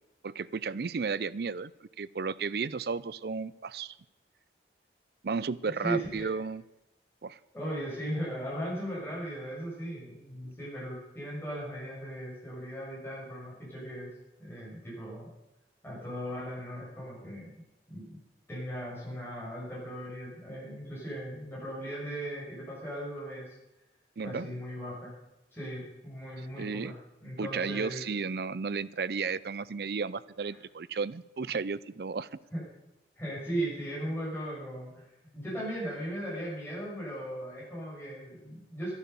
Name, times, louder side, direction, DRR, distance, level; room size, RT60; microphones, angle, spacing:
voice 1, 0.2-1.7 2.0-3.9 5.2-6.6 7.2-7.4 24.2-24.5 26.6-26.9 27.4-32.3, right 5 dB, 60° right, 18 dB, 0.5 m, -33 dB
voice 2, 5.8-6.3 7.5-14.1 14.4-15.3 15.8-17.5 17.9-18.2 18.5-23.5 24.2-25.1 25.5-28.1 30.5-30.6 32.5-32.6 33.2-35.1 35.3-38.9, right 1 dB, 15° left, -6 dB, 6.5 m, -37 dB
12.0 x 11.5 x 6.9 m, 0.95 s
head